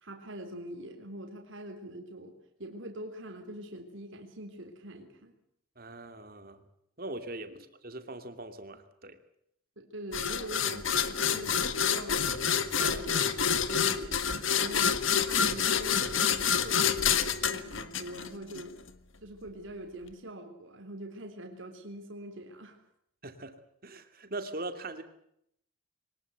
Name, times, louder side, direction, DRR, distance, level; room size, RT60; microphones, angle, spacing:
voice 1, 0.0-2.3 2.6-5.4 7.5-7.6 9.8-14.2 14.6-15.0 15.2-18.8 19.2-22.8, right 1 dB, 65° right, 4 dB, 3.7 m, -43 dB
voice 2, 5.8-6.6 7.0-9.2 23.2-23.6 23.8-25.0, right 2 dB, 45° right, 8 dB, 2.5 m, -41 dB
sound 1, 10.1-18.6, left 7 dB, 65° left, 1.6 m, -28 dB
23.5 x 19.5 x 8.0 m, 0.73 s
head